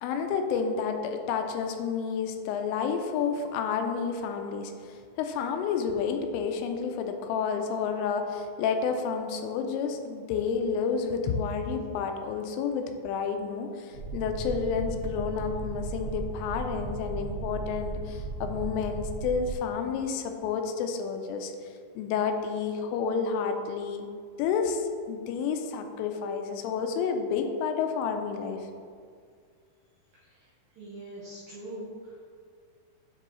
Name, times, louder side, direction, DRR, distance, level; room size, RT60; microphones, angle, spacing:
voice 1, 0.0-21.5 22.0-24.1 24.4-28.7, left 6 dB, 90° left, 5 dB, 3.1 m, -30 dB
sound 1, 13.9-19.5, right 3 dB, 65° right, 3.6 m, -36 dB
voice 2, 30.8-32.1, right 1 dB, 80° right, -8 dB, 2.1 m, -42 dB
9.2 x 3.7 x 3.1 m, 2.1 s
omnidirectional pair, 5.6 m